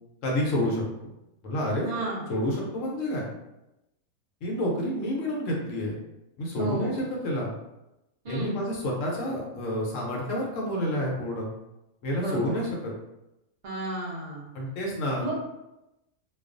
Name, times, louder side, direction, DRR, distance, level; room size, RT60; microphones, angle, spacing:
voice 1, 0.2-1.1 1.4-1.9 2.3-3.3 4.4-6.0 6.4-7.5 8.3-11.5 12.0-12.9 14.5-15.3, left 1 dB, 65° left, -2 dB, 0.9 m, -29 dB
voice 2, 1.8-2.3 6.6-7.0 8.2-8.6 12.1-12.6 13.6-14.5 15.2-15.3, right 2 dB, 55° right, -4 dB, 0.4 m, -32 dB
2.3 x 2.3 x 2.4 m, 0.93 s
omnidirectional pair, 1.6 m